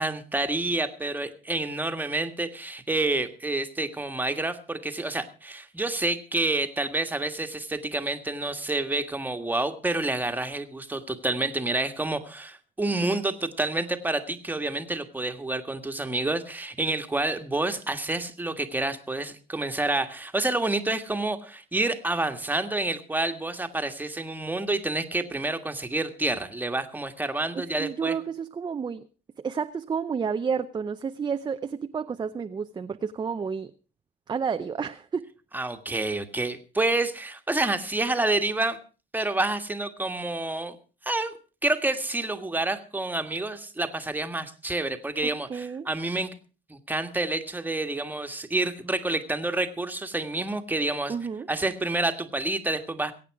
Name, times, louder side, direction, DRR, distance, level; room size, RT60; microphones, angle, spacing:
voice 1, 0.0-28.2 35.5-38.8 39.1-40.7 41.0-41.3 41.6-46.3 46.7-51.1 51.5-53.1, right 2 dB, 10° right, 7 dB, 1.6 m, -28 dB
voice 2, 27.5-29.0 29.4-33.7 34.3-35.3 45.2-45.9 51.1-51.5, right 6 dB, 25° right, 8 dB, 0.7 m, -31 dB
22.0 x 8.8 x 4.8 m, 0.36 s
cardioid pair, 110°, 17 cm